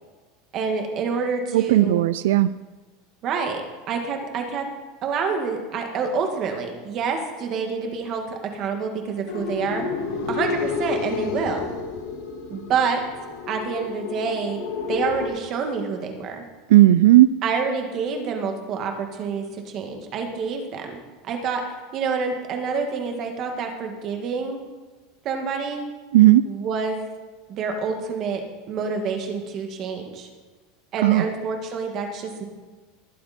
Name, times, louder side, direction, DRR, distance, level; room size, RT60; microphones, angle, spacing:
voice 1, 0.5-2.0 3.2-4.7 5.0-9.8 10.3-11.7 12.5-13.0 13.5-14.6 14.9-16.4 17.4-21.6 21.9-24.6 25.2-25.8 26.5-27.0 27.5-28.4 28.7-30.3 30.9-32.4, right 5 dB, 35° right, 4 dB, 1.9 m, -27 dB
voice 2, 1.5-2.5 16.7-17.3 26.1-26.4 31.0-31.2, right 15 dB, 85° right, 15 dB, 0.3 m, -14 dB
sound 1, 9.3-15.3, left 5 dB, 80° left, 2.4 m, -30 dB
19.5 x 8.8 x 4.4 m, 1.3 s
supercardioid pair, 160°, 0 cm